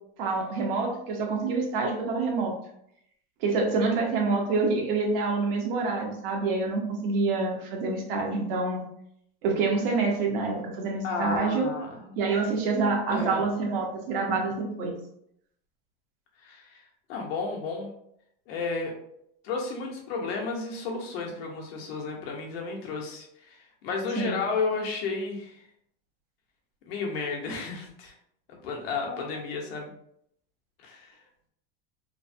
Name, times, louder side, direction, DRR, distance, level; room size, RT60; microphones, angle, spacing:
voice 1, 0.2-2.5 3.4-8.8 9.4-11.7 12.2-15.0 24.2-24.4, right 3 dB, 70° right, 1 dB, 1.0 m, -27 dB
voice 2, 11.0-12.2 13.1-13.4 16.4-16.8 17.1-17.9 18.5-18.9 19.4-25.6 26.9-28.1 28.5-29.9 30.8-31.2, left 4 dB, 80° left, 0 dB, 1.0 m, -32 dB
3.1 x 2.1 x 2.6 m, 0.72 s
supercardioid pair, 135°, 29 cm